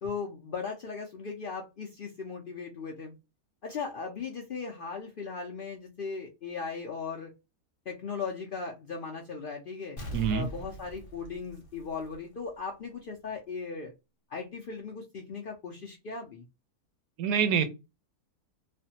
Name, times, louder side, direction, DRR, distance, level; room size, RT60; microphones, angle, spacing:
voice 1, 0.0-3.1 3.6-7.3 7.9-10.0 10.3-13.9 14.3-16.4, left 5 dB, 80° left, 0.4 m, -38 dB
Explosion, 10.0-12.6 12.9-13.0, right 1 dB, 35° left, 0.6 m, -41 dB
voice 2, 10.1-10.5 17.2-17.7, right 7 dB, 85° right, 1.1 m, -26 dB
3.2 x 2.1 x 2.7 m
omnidirectional pair, 1.6 m